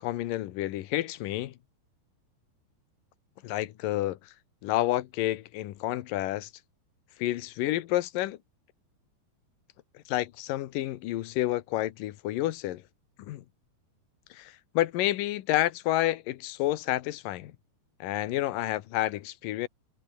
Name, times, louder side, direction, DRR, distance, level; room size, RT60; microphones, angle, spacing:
voice 1, 0.0-1.5 3.4-4.2 4.6-6.5 7.2-8.4 10.1-12.8 13.2-13.4 14.3-17.5 18.0-19.7, left 15 dB, 70° left, 2.2 m, -29 dB
omnidirectional pair, 5.0 m